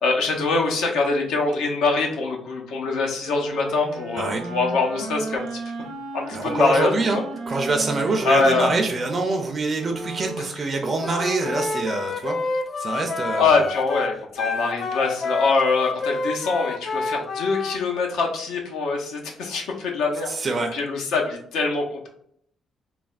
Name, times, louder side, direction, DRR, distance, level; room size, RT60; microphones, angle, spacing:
voice 1, 0.0-5.4 6.1-7.2 8.2-8.7 10.4-10.5 13.4-22.1, left 3 dB, 85° left, 1 dB, 0.6 m, -24 dB
Wind instrument woodwind instrument, 3.2-10.6, right 2 dB, 90° right, 0.6 m, -35 dB
voice 2, 6.3-7.2 7.5-12.4 12.8-13.6 20.3-20.8, right 3 dB, 40° right, 2 dB, 0.4 m, -25 dB
Wind instrument woodwind instrument 2, 11.0-17.8, left 3 dB, 50° left, 0.3 m, -28 dB
3.2 x 2.2 x 2.4 m, 0.66 s
cardioid pair, 90°, 0 cm